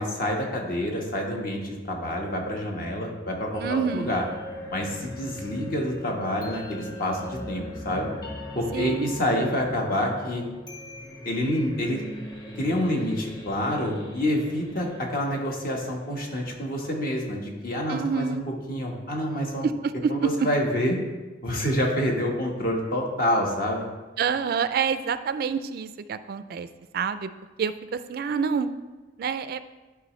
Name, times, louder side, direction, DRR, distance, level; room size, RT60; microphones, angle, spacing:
voice 1, 0.0-4.2 4.7-8.1 8.5-10.4 11.2-12.0 12.5-19.7 20.1-21.0 21.4-23.9, left 1 dB, 55° left, 0 dB, 1.3 m, -27 dB
sound 1, 3.5-16.5, equal, 25° left, 0.9 m, -40 dB
voice 2, 3.6-4.1 8.7-9.4 17.9-18.4 19.6-20.3 24.2-26.7 26.9-27.3 27.6-28.7 29.2-29.6, right 6 dB, 55° right, 12 dB, 0.3 m, -27 dB
11.0 x 4.9 x 3.1 m, 1.2 s
head